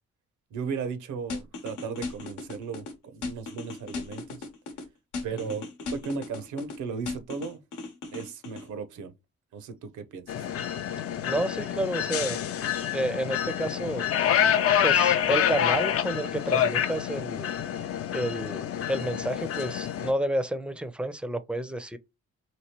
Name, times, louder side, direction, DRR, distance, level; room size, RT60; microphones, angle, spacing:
voice 1, 0.5-4.4 5.2-5.6 5.9-7.6 8.1-9.1 9.5-10.5, right 5 dB, 80° right, 0.6 m, -36 dB
sound 1, 1.3-2.9 3.2-4.8 5.1-6.8 7.1-8.6, left 3 dB, 85° left, 0.9 m, -36 dB
sound 2, 10.3-20.1, left 9 dB, 50° left, 0.4 m, -27 dB
voice 2, 11.2-12.4 12.9-14.0 14.8-17.5 18.1-22.0, right 1 dB, 5° right, 0.4 m, -30 dB
3.0 x 2.7 x 2.9 m
cardioid pair, 70°, 29 cm